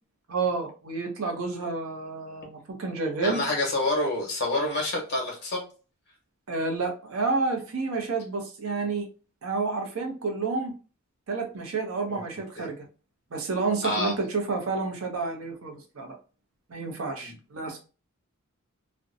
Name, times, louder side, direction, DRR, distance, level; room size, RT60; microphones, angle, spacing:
voice 1, 0.3-3.4 6.5-9.0 9.4-10.7 11.3-12.8 13.3-16.2 16.7-17.8, right 4 dB, 70° right, 3 dB, 0.6 m, -30 dB
voice 2, 3.2-5.6 12.1-12.2 12.6-12.7 13.8-14.2 17.1-17.3, left 1 dB, 50° left, 0 dB, 1.0 m, -28 dB
2.5 x 2.1 x 2.5 m, 0.35 s
head